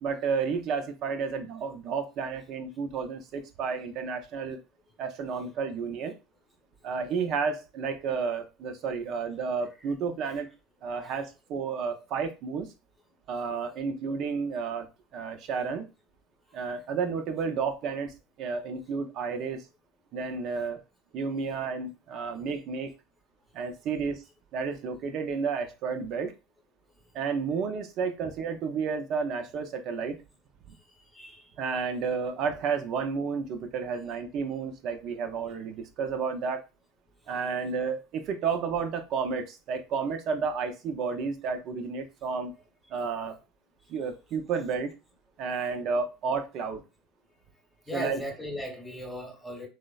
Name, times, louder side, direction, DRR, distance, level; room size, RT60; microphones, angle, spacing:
voice 1, 0.0-4.6 5.0-6.1 6.8-10.5 10.8-12.7 13.3-14.9 15.1-15.9 16.5-19.7 20.1-20.8 21.1-22.9 23.5-24.2 24.5-26.3 27.1-30.2 31.6-36.6 37.3-42.5 42.9-43.4 43.9-44.9 45.4-46.8 47.9-48.2, right 5 dB, 55° right, 0.5 m, -31 dB
voice 2, 31.1-31.5 47.9-49.7, equal, 5° left, 0.9 m, -37 dB
3.1 x 2.0 x 2.3 m
supercardioid pair, 105°, 0 cm